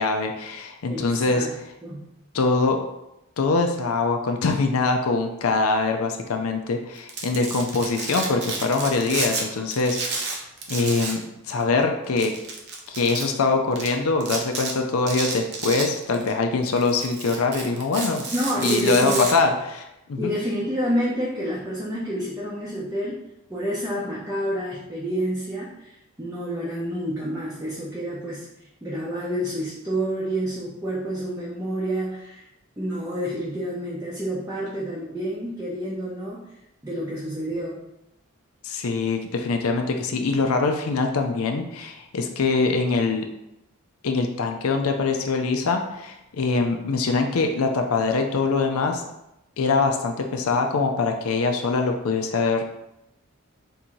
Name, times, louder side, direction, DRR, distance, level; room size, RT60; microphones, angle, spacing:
voice 1, 0.0-1.5 2.3-2.8 3.4-10.0 10.7-12.3 12.9-18.2 18.6-20.3 38.6-43.3 44.0-49.0 49.6-52.7, left 3 dB, 80° left, 4 dB, 0.5 m, -23 dB
voice 2, 0.9-1.5 1.8-2.1 18.3-19.3 20.2-23.2 23.5-28.5 28.8-32.5 32.8-36.4 36.8-37.9, equal, 15° right, -7 dB, 0.6 m, -28 dB
Domestic sounds home sounds, 7.0-9.4 9.7-11.2 11.5-11.6 12.2-13.2 13.8-13.9 14.2-14.7 15.1-16.3 16.7-19.3, right 4 dB, 50° right, 0.7 m, -31 dB
3.6 x 2.7 x 4.5 m, 0.87 s
head